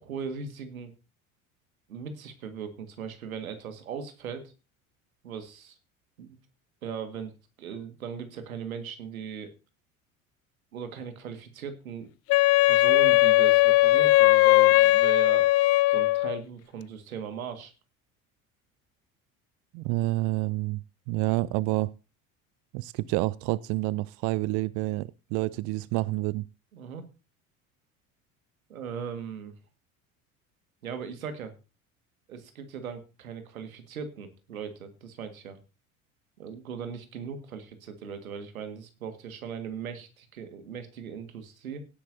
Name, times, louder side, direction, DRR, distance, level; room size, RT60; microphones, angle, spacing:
voice 1, 0.0-0.9 1.9-4.5 5.2-5.8 6.2-6.4 6.8-7.3 7.6-9.5 10.7-12.1 12.6-15.5 15.9-17.7 26.7-27.0 28.7-29.6 30.8-31.5 32.3-35.6 36.4-41.9, right 6 dB, 75° right, 1.9 m, -38 dB
Wind instrument woodwind instrument, 12.3-16.4, left 18 dB, 35° left, 0.5 m, -19 dB
voice 2, 19.7-20.8 21.1-21.9 22.7-26.5, right 19 dB, 45° right, 0.5 m, -28 dB
17.0 x 10.5 x 2.7 m
figure-of-eight pair, 65°, 42 cm